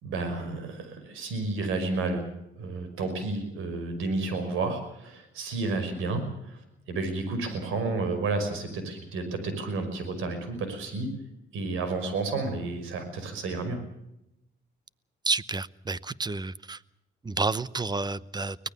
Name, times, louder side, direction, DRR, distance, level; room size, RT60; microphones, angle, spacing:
voice 1, 0.0-2.2 2.6-6.6 6.9-11.1 11.5-13.8, right 3 dB, 90° right, 9 dB, 5.6 m, -31 dB
voice 2, 15.3-16.8 17.2-18.7, right 3 dB, 20° right, 19 dB, 0.9 m, -30 dB
24.5 x 19.0 x 6.9 m, 0.85 s
cardioid pair, 90°, 20 cm